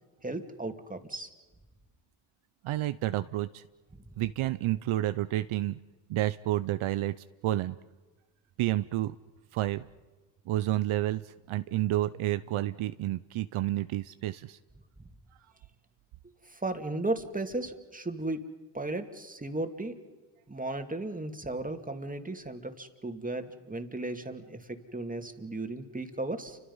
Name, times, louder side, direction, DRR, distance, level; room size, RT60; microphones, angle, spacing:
voice 1, 0.2-1.3 16.5-20.0 20.5-26.6, right 2 dB, 15° right, 6 dB, 2.5 m, -35 dB
voice 2, 2.6-3.6 4.2-5.8 6.1-7.1 7.4-7.8 8.6-9.2 9.5-9.8 10.5-14.6, right 14 dB, 75° right, 13 dB, 0.7 m, -30 dB
29.0 x 25.5 x 5.6 m, 1.3 s
supercardioid pair, 65°, 50 cm